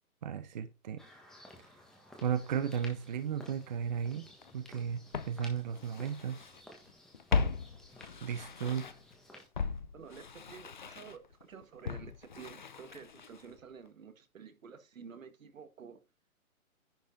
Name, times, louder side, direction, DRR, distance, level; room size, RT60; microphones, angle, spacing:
voice 1, 0.2-1.0 2.2-4.3 4.5-6.4 8.2-8.9, right 8 dB, 30° right, 0.7 m, -35 dB
sound 1, 1.0-9.5, left 1 dB, ahead, 1.3 m, -55 dB
Walk footsteps, 4.4-4.5 5.1-6.6 6.9-9.1 9.5-13.6 13.9-14.0, left 5 dB, 35° left, 0.4 m, -38 dB
voice 2, 9.9-16.0, right 6 dB, 65° right, 1.7 m, -51 dB
10.5 x 5.2 x 3.9 m
hypercardioid pair, 150°, 43 cm